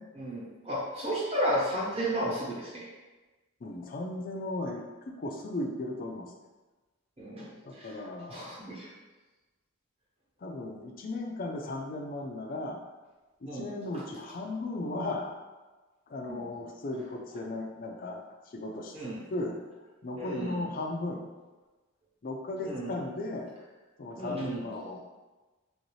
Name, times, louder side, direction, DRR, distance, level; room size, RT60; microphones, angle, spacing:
voice 1, 0.2-2.8 7.2-8.0 8.3-8.9 13.5-13.7 16.3-16.4 18.9-19.2 20.2-20.7 22.6-22.9 24.2-24.7, equal, 30° right, -7 dB, 1.0 m, -33 dB
voice 2, 3.6-6.3 7.6-8.5 10.4-12.8 13.4-15.4 16.1-19.6 20.0-21.3 22.2-23.5 24.0-25.0, left 2 dB, 40° left, 2 dB, 0.4 m, -36 dB
3.1 x 2.7 x 3.1 m, 1.2 s
head